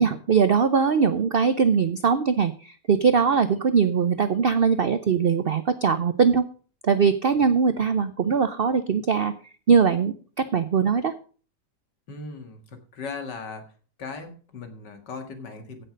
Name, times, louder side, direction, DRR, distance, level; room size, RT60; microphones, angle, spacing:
voice 1, 0.0-6.4 6.8-9.3 9.7-11.1, right 6 dB, 90° right, 12 dB, 0.5 m, -21 dB
voice 2, 12.1-13.7 14.0-15.9, left 4 dB, 75° left, 7 dB, 2.4 m, -38 dB
15.5 x 6.6 x 5.2 m, 0.40 s
omnidirectional pair, 1.9 m